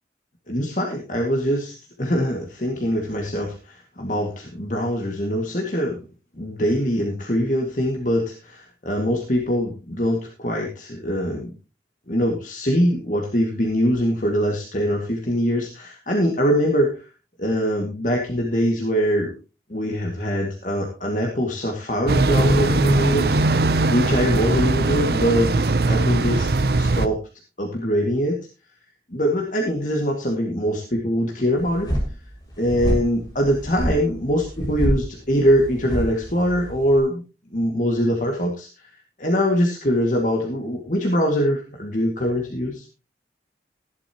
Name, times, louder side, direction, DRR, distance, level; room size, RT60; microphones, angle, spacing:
voice 1, 0.5-6.0 6.4-11.5 12.1-17.1 17.4-19.3 19.7-23.4 23.9-26.5 26.7-27.2 27.6-28.4 29.1-31.9 32.6-37.2 37.5-38.7 39.2-42.8, equal, 45° left, 0 dB, 2.2 m, -23 dB
sound 1, 22.1-27.1, right 2 dB, 60° right, 0.7 m, -20 dB
sound 2, 31.6-37.0, equal, 20° left, 5.7 m, -28 dB
16.0 x 11.5 x 3.0 m, 0.32 s
head